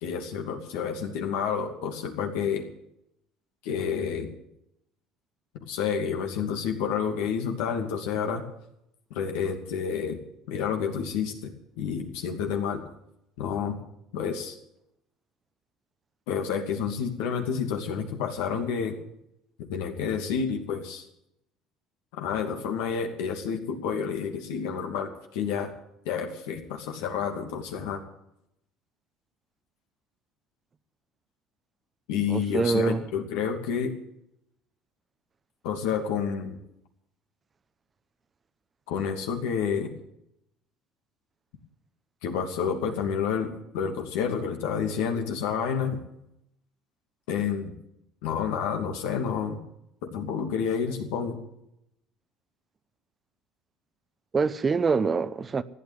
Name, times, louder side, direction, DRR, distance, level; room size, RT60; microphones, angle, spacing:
voice 1, 0.0-2.6 3.6-4.3 5.7-8.4 9.1-10.2 10.5-12.8 13.4-13.8 14.1-14.6 16.3-18.9 19.6-21.0 22.1-25.7 26.0-28.0 32.1-33.9 35.6-36.6 38.9-39.9 42.2-46.0 47.3-47.7 48.2-49.6 50.0-51.4, left 7 dB, 80° left, 2.6 m, -29 dB
voice 2, 32.3-33.0 54.3-55.6, right 5 dB, 30° right, 0.9 m, -25 dB
15.0 x 9.5 x 9.5 m
supercardioid pair, 85°, 0 cm